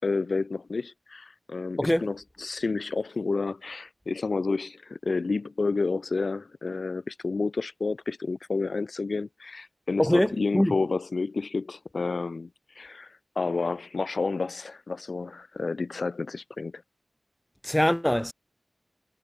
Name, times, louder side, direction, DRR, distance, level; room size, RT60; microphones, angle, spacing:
voice 1, 0.0-12.5 12.8-16.8, left 4 dB, 70° left, 5.5 m, -30 dB
voice 2, 10.0-10.7 17.6-18.3, left 1 dB, 10° left, 3.5 m, -23 dB
wide cardioid pair, 55°, 0 cm